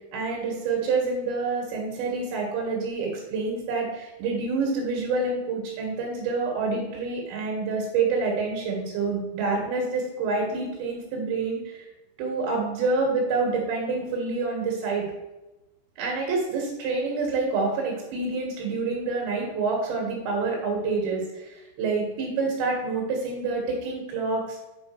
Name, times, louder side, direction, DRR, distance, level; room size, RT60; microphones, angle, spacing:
voice 1, 0.1-11.8 12.2-15.0 16.0-24.6, right 4 dB, 75° right, -2 dB, 4.3 m, -27 dB
9.2 x 5.8 x 6.1 m, 1.0 s
omnidirectional pair, 5.3 m